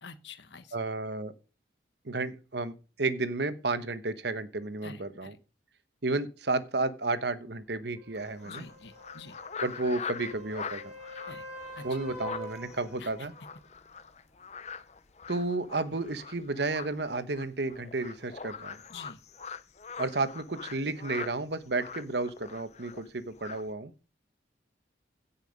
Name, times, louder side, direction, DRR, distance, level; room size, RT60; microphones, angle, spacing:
voice 1, 0.0-0.7 4.8-5.3 8.4-9.4 11.3-11.4 11.7-11.9 13.0-13.1 18.9-19.2, left 4 dB, 70° left, 12 dB, 1.2 m, -47 dB
voice 2, 0.7-1.3 2.0-2.7 3.0-5.3 6.0-8.6 9.6-10.9 11.8-13.3 15.3-18.8 20.0-23.9, right 3 dB, 65° right, 13 dB, 1.1 m, -32 dB
sound 1, 8.0-13.6 17.7-17.8, equal, 5° right, 4.2 m, -46 dB
sound 2, 8.1-21.3 21.7-23.1 23.3-23.7, left 6 dB, 35° left, 0.6 m, -43 dB
16.5 x 5.7 x 5.4 m, 0.34 s
head